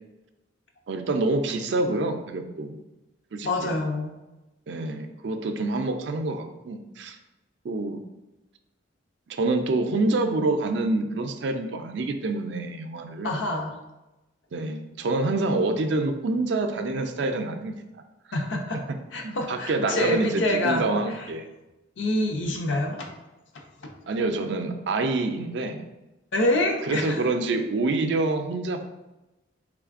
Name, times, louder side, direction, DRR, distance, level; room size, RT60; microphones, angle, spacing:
voice 1, 0.9-2.8 3.3-3.7 4.7-7.2 7.6-8.0 9.3-13.4 14.5-17.7 18.7-19.0 19.2-21.4 24.1-25.8 26.9-28.8, right 2 dB, 65° right, 7 dB, 0.4 m, -27 dB
voice 2, 3.4-4.1 13.2-13.7 18.3-18.8 19.1-20.9 22.0-23.1 23.8-23.9 26.3-27.2, left 1 dB, 85° left, 3 dB, 0.6 m, -26 dB
3.5 x 3.3 x 2.4 m, 1.0 s
head